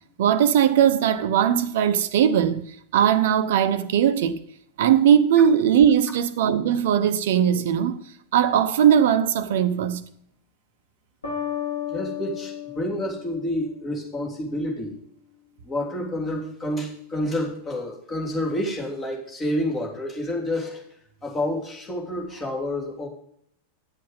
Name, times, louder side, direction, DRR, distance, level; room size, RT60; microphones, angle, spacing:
voice 1, 0.2-2.6 2.9-4.4 4.8-8.0 8.3-10.0, right 9 dB, 55° right, 0.8 m, -19 dB
sound 1, 11.2-14.1, left 9 dB, 70° left, 4.1 m, -33 dB
voice 2, 11.9-15.0 15.6-20.8 21.2-23.1, left 1 dB, 20° left, 3.2 m, -29 dB
11.0 x 7.8 x 5.2 m
figure-of-eight pair, 90°, 0 cm